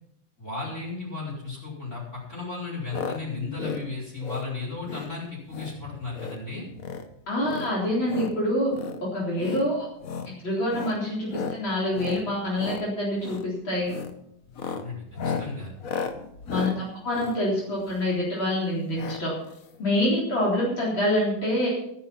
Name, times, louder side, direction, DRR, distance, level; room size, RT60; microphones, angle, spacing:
voice 1, 0.4-6.7 14.7-15.7, left 3 dB, 35° left, -6 dB, 5.3 m, -35 dB
sound 1, 2.9-3.2 3.5-3.8 4.2-4.5 4.8-5.1 5.5-5.8 6.1-6.4 6.7-7.1 7.4-8.3 8.7-9.0 9.4-9.7 10.0-10.3 10.7-11.0 11.3-11.6 11.9-12.2 12.5-12.8 13.2-13.5 13.9-14.1 14.5-18.2 19.0-19.2 19.5-19.6 19.8-19.9, left 5 dB, 50° left, 1.2 m, -34 dB
voice 2, 7.3-8.7 9.1-9.8 10.4-13.9 16.5-19.3 19.8-21.7, left 1 dB, 70° left, -5 dB, 4.6 m, -26 dB
13.0 x 10.5 x 5.7 m, 0.75 s
omnidirectional pair, 2.2 m